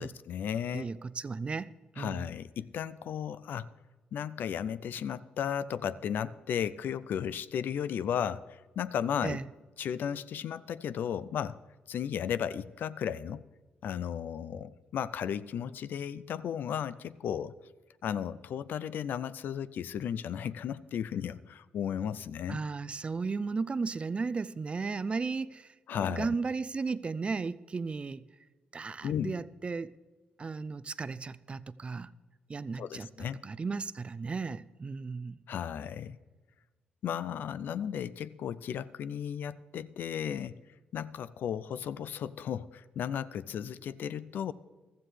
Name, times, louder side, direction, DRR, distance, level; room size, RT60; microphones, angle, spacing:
voice 1, 0.0-0.9 2.0-3.7 4.1-9.4 9.8-11.6 11.9-13.4 13.8-17.5 18.0-22.6 25.9-26.3 29.0-29.3 32.8-33.4 35.5-36.2 37.0-40.6 40.9-44.5, left 8 dB, 70° left, 0.4 m, -34 dB
voice 2, 0.7-2.3 9.2-9.4 22.5-25.7 26.1-28.2 28.7-29.9 30.4-32.1 32.5-35.4, right 4 dB, 35° right, 0.4 m, -35 dB
15.0 x 13.5 x 3.3 m
cardioid pair, 75°, 3 cm